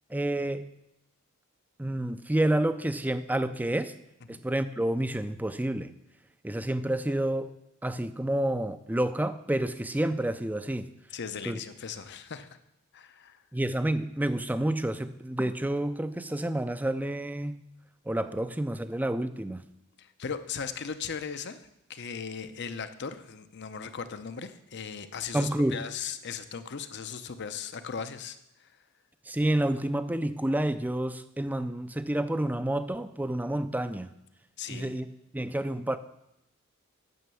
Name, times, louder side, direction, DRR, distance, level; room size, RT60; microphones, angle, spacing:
voice 1, 0.1-0.6 1.8-3.9 4.3-5.9 6.4-7.5 7.8-10.9 11.4-11.6 13.5-17.6 18.1-19.6 25.3-25.8 29.3-34.1 34.7-35.1 35.3-36.0, right 1 dB, 10° right, 11 dB, 0.5 m, -29 dB
voice 2, 11.1-12.6 12.9-13.4 19.5-19.6 20.0-28.8 34.6-35.0, left 6 dB, 55° left, 10 dB, 0.7 m, -38 dB
9.3 x 6.8 x 6.9 m, 0.83 s
head